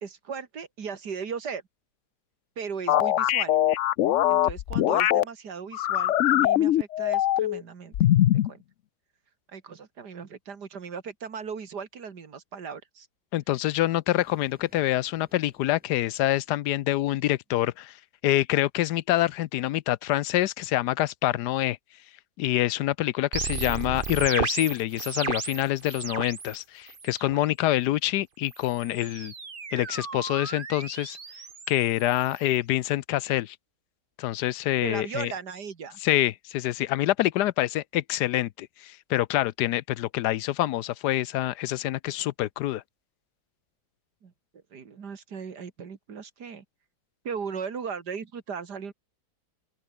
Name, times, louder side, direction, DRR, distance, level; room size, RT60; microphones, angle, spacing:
voice 1, 0.0-1.6 2.6-3.6 4.3-8.0 8.5-8.6 9.5-13.1 34.8-36.0 44.2-44.3 44.7-46.6 47.2-48.9, right 6 dB, 80° right, 2.6 m, -37 dB
sound 1, 2.9-5.2 5.7-7.6 7.9-8.5, left 13 dB, 65° left, 0.8 m, -22 dB
voice 2, 13.3-18.0 18.2-21.8 22.4-29.3 29.7-31.2 31.7-33.6 34.2-35.3 36.0-42.8, left 14 dB, 85° left, 1.2 m, -26 dB
Explosion, 14.2-17.1, equal, 5° right, 6.3 m, -62 dB
sound 2, 23.3-26.6 26.9-27.4 28.4-32.6, right 5 dB, 35° right, 1.4 m, -35 dB
open air
omnidirectional pair, 1.7 m